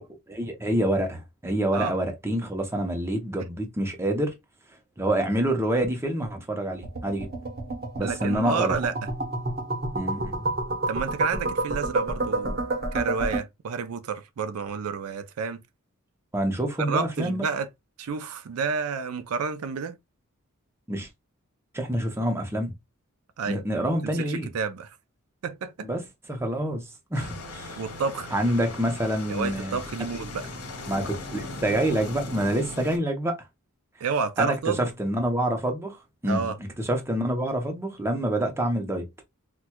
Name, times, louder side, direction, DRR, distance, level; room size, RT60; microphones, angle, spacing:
voice 1, 0.3-4.3 5.0-7.3 8.0-8.7 9.9-10.4 16.3-17.4 20.9-21.1 21.7-22.7 23.5-24.5 25.8-26.0 26.3-27.8 28.3-29.8 30.2-30.3 30.9-33.4 34.4-36.5 36.8-39.1, right 1 dB, 10° right, 0.6 m, -27 dB
sound 1, 6.8-13.4, right 2 dB, 45° right, 0.9 m, -29 dB
voice 2, 8.0-8.9 10.9-12.6 12.9-15.6 16.9-17.7 18.0-20.0 23.4-23.9 24.3-25.0 25.4-25.9 27.8-28.3 29.3-30.5 34.0-34.9 36.2-36.6, right 5 dB, 75° right, 0.4 m, -30 dB
sound 2, 27.1-33.0, left 2 dB, 85° left, 1.0 m, -38 dB
4.3 x 2.2 x 2.2 m
head